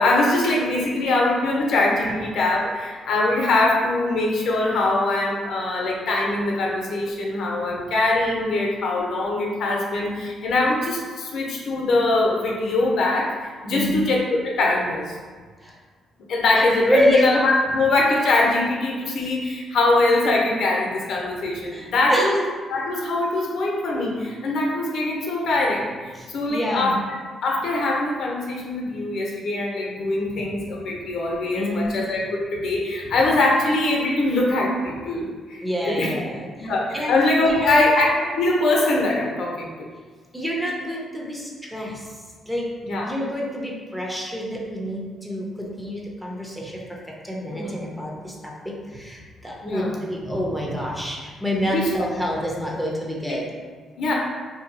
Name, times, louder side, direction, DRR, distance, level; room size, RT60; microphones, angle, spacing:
voice 1, 0.0-13.3 13.6-15.2 16.3-22.4 22.7-27.0 27.4-36.1 36.6-38.1 38.3-39.9 42.9-43.0 47.5-47.8 49.6-49.9 51.7-51.9 53.3-53.4 54.0-54.1, left 2 dB, 70° left, -2 dB, 0.7 m, -22 dB
voice 2, 13.7-14.1 15.6-15.7 16.5-17.3 21.7-22.3 26.1-26.9 30.3-30.4 31.5-32.0 33.1-33.2 35.6-37.2 37.4-37.9 40.3-42.2 42.5-42.7 43.0-53.5, equal, 5° right, -2 dB, 0.7 m, -27 dB
2.7 x 2.2 x 3.9 m, 1.5 s
cardioid pair, 90°, 0 cm